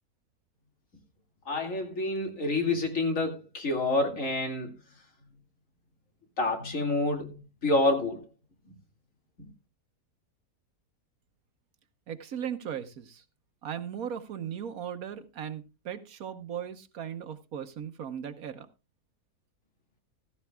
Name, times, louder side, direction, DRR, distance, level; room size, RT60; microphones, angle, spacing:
voice 1, 1.5-4.7 6.4-8.2, left 2 dB, 55° left, 2.6 m, -28 dB
voice 2, 12.1-13.2 13.6-18.7, right 9 dB, 70° right, 1.4 m, -37 dB
15.5 x 14.0 x 2.3 m
omnidirectional pair, 1.6 m